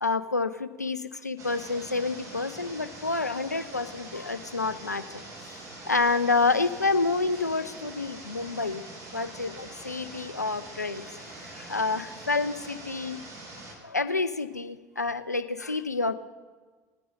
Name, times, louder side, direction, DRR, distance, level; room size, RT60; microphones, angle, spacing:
voice 1, 0.0-8.8 9.1-13.2 13.8-16.2, left 3 dB, 90° left, 12 dB, 0.5 m, -29 dB
sound 1, 1.4-13.7, right 2 dB, 40° right, 3.6 m, -44 dB
18.5 x 9.1 x 4.1 m, 1.4 s
figure-of-eight pair, 70°, 9 cm